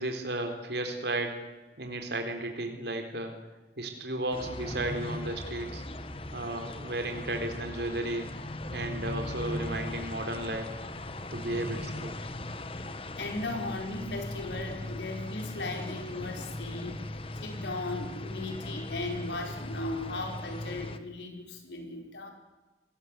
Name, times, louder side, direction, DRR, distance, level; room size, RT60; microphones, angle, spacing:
voice 1, 0.0-1.4 1.8-3.3 3.8-5.8 6.3-8.3 8.7-10.7 11.3-12.1, right 1 dB, 70° right, 4 dB, 3.8 m, -34 dB
sound 1, 4.3-21.0, left 1 dB, 30° left, 1.4 m, -39 dB
voice 2, 13.2-17.0 17.4-22.3, left 2 dB, 85° left, 3 dB, 4.8 m, -37 dB
28.5 x 20.0 x 8.3 m, 1.2 s
head